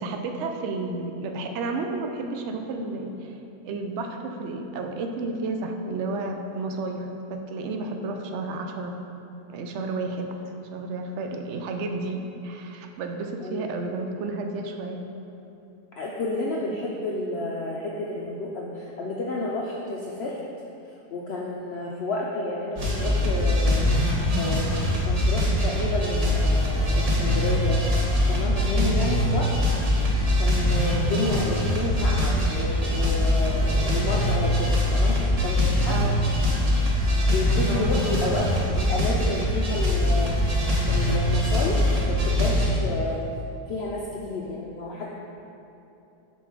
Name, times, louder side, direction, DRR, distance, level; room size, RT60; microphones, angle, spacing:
voice 1, 0.0-3.4 3.6-8.9 9.5-10.3 10.7-15.0 28.7-29.0 35.9-36.2 37.5-38.0, right 3 dB, 70° right, 4 dB, 0.7 m, -32 dB
voice 2, 13.4-13.8 16.0-20.4 21.1-23.9 24.3-27.8 28.3-29.6 30.4-36.1 37.3-40.4 40.9-43.2 43.7-45.1, left 2 dB, 75° left, -3 dB, 0.5 m, -30 dB
sound 1, 22.8-42.7, left 1 dB, 35° right, 0.7 m, -23 dB
5.4 x 4.4 x 4.9 m, 2.8 s
omnidirectional pair, 1.7 m